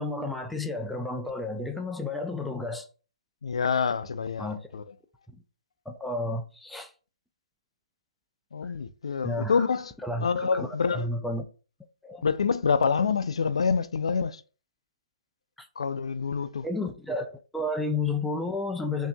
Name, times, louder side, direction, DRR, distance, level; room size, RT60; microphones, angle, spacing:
voice 1, 0.0-2.9 4.4-4.7 5.9-6.9 9.2-9.7 10.0-11.4 12.0-12.2 15.6-15.7 16.6-19.1, left 2 dB, ahead, 0.3 m, -31 dB
voice 2, 3.4-4.8 8.5-9.9 10.2-11.1 12.2-14.4 15.8-16.7, left 5 dB, 80° left, 0.4 m, -27 dB
5.6 x 2.7 x 2.2 m
hypercardioid pair, 150°, 3 cm